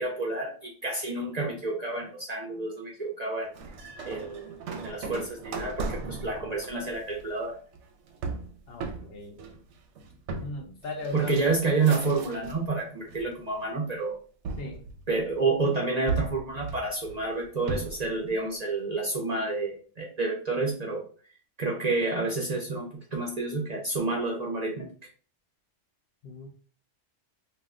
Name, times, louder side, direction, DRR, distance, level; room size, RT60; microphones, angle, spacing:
voice 1, 0.0-3.5 4.0-7.6 11.1-14.2 15.1-21.0 21.6-24.9, right 3 dB, 45° right, -2 dB, 0.6 m, -29 dB
sound 1, 3.5-12.7 13.1-13.7 14.4-15.5 16.1-18.1, right 4 dB, 75° right, 0.8 m, -37 dB
voice 2, 8.7-9.4 10.4-11.4 14.6-14.8 26.2-26.5, left 2 dB, 60° left, 3 dB, 0.7 m, -37 dB
2.6 x 2.1 x 3.5 m, 0.42 s
omnidirectional pair, 1.2 m